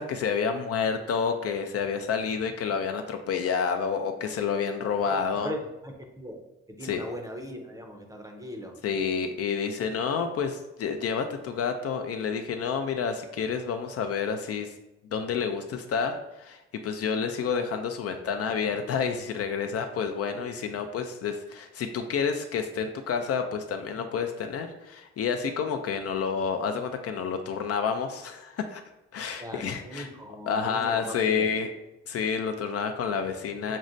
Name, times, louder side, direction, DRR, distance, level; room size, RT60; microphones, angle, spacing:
voice 1, 0.0-5.5 6.8-7.0 8.8-14.7 15.1-28.8 29.1-30.1 30.5-31.7 32.1-33.8, left 6 dB, 55° left, 6 dB, 0.4 m, -29 dB
voice 2, 5.1-5.6 5.8-6.4 6.7-8.7 29.4-31.5, equal, 10° right, 2 dB, 0.6 m, -39 dB
6.1 x 2.1 x 2.6 m, 0.93 s
cardioid pair, 90°, 30 cm